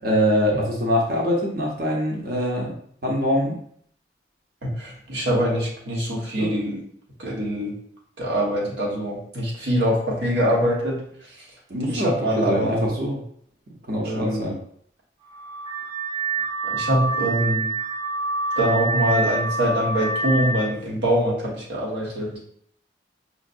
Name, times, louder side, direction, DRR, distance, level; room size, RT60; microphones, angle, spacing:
voice 1, 0.0-2.8 3.0-3.6 6.4-6.5 11.7-13.2 13.8-14.6, equal, 55° right, -2 dB, 0.8 m, -23 dB
voice 2, 4.6-6.8 7.2-7.7 8.2-11.0 11.9-12.8 14.0-14.4 16.6-17.7 18.6-22.4, equal, 85° right, -4 dB, 1.2 m, -24 dB
Car / Alarm, 15.2-20.7, right 2 dB, 30° right, 0.5 m, -26 dB
5.0 x 2.0 x 2.5 m, 0.64 s
head